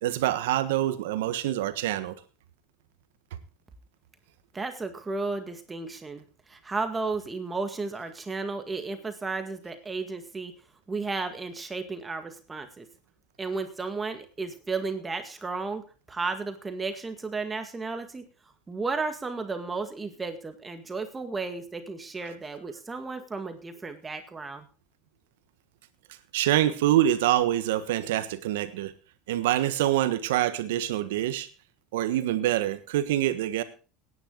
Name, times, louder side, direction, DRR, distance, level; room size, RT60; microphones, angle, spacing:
voice 1, 0.0-2.1 26.3-28.9 29.3-31.5 31.9-33.6, right 13 dB, 80° right, 12 dB, 1.4 m, -25 dB
voice 2, 4.5-6.2 6.5-10.5 10.9-12.9 13.4-18.2 18.7-24.6, right 3 dB, 20° right, 7 dB, 1.9 m, -33 dB
17.0 x 10.0 x 3.9 m, 0.35 s
supercardioid pair, 95°, 0 cm